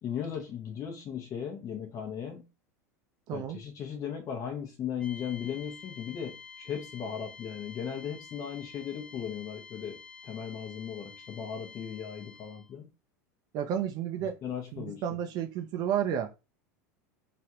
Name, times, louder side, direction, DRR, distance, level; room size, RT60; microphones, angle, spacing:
voice 1, 0.0-2.5 3.3-12.9 14.4-15.0, left 8 dB, 35° left, 0.8 m, -37 dB
voice 2, 3.3-3.6 13.5-14.4 14.7-16.4, right 9 dB, 50° right, 0.4 m, -31 dB
sound 1, 5.0-12.7, left 5 dB, 10° left, 0.5 m, -49 dB
3.3 x 2.4 x 2.8 m
hypercardioid pair, 90°, 9 cm